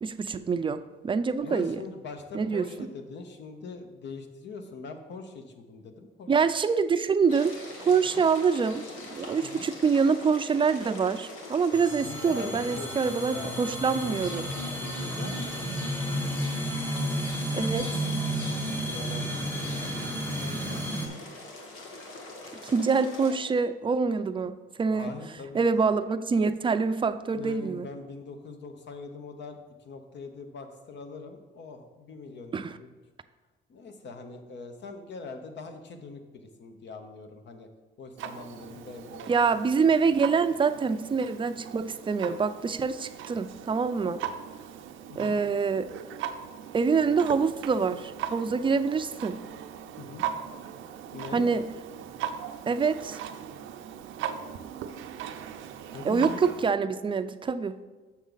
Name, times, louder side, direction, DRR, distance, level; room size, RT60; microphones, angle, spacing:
voice 1, 0.0-1.8 2.3-2.7 6.3-14.5 15.2-15.3 17.5-18.1 22.6-25.2 25.5-27.9 32.5-32.7 39.3-44.2 45.2-45.9 46.7-49.4 51.3-51.7 52.7-53.2 56.0-57.8, right 5 dB, 25° right, 11 dB, 0.4 m, -26 dB
voice 2, 1.4-6.3 8.2-8.3 9.4-9.7 12.0-13.6 14.7-16.0 18.7-20.9 24.9-25.7 27.3-29.6 29.8-32.9 33.7-37.7 38.0-39.3 45.1-45.3 50.0-50.3 51.1-51.6 55.9-56.5, left 4 dB, 65° left, 6 dB, 1.0 m, -42 dB
sound 1, 7.3-23.3, left 2 dB, 85° left, 1.4 m, -43 dB
sound 2, 11.7-21.1, equal, 10° left, 1.1 m, -32 dB
Clock, 38.2-56.7, right 9 dB, 85° right, 0.5 m, -39 dB
7.1 x 6.4 x 4.0 m, 1.3 s
cardioid pair, 90°, 20 cm